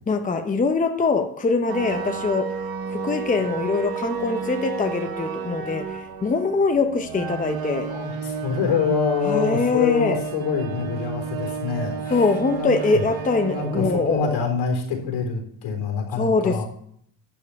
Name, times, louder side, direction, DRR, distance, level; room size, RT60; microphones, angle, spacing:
voice 1, 0.1-2.5 2.9-7.9 9.2-10.2 12.1-14.4 16.2-16.6, left 4 dB, 15° left, 6 dB, 0.8 m, -23 dB
sound 1, 1.7-14.7, right 6 dB, 50° right, 1.1 m, -32 dB
voice 2, 7.9-12.2 12.5-13.0 13.5-16.7, left 6 dB, 80° left, 3 dB, 4.0 m, -26 dB
12.0 x 4.6 x 8.4 m, 0.65 s
cardioid pair, 155°, 47 cm